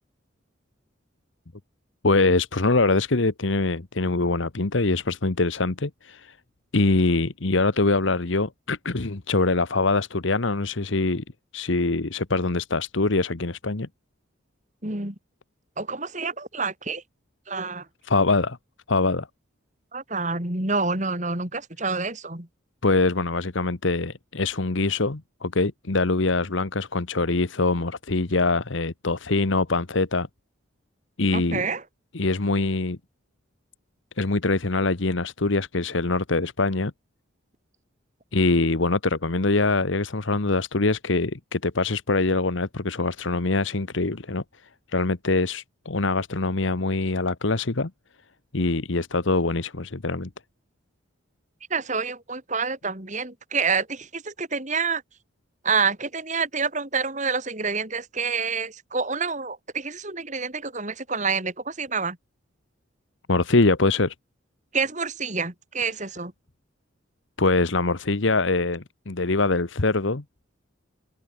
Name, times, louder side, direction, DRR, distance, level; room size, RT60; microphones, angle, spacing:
voice 1, 2.0-6.4 6.7-11.2 11.5-13.9 18.0-18.6 18.9-19.3 22.8-30.3 31.2-31.6 32.1-33.0 34.2-36.9 38.3-44.4 44.9-47.9 48.5-50.3 63.3-64.1 67.4-70.2, left 3 dB, 70° left, 1.2 m, -23 dB
voice 2, 14.8-15.1 15.8-17.0 17.5-17.8 19.9-22.5 31.3-31.8 51.7-55.0 55.6-62.2 64.7-66.3, right 4 dB, 35° right, 3.2 m, -28 dB
head